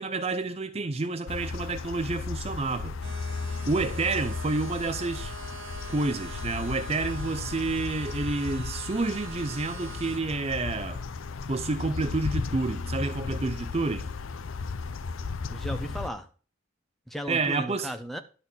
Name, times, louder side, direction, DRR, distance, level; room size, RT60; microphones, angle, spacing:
voice 1, 0.0-3.0 3.7-5.4 5.9-11.0 11.5-14.1 17.3-17.9, right 3 dB, 30° right, 0.5 m, -29 dB
sound 1, 1.3-16.1, left 4 dB, 85° left, 0.6 m, -35 dB
sound 2, 3.0-10.2, right 3 dB, 80° right, 1.4 m, -43 dB
voice 2, 15.5-16.3 17.1-18.2, equal, ahead, 0.8 m, -35 dB
11.5 x 4.2 x 7.0 m
head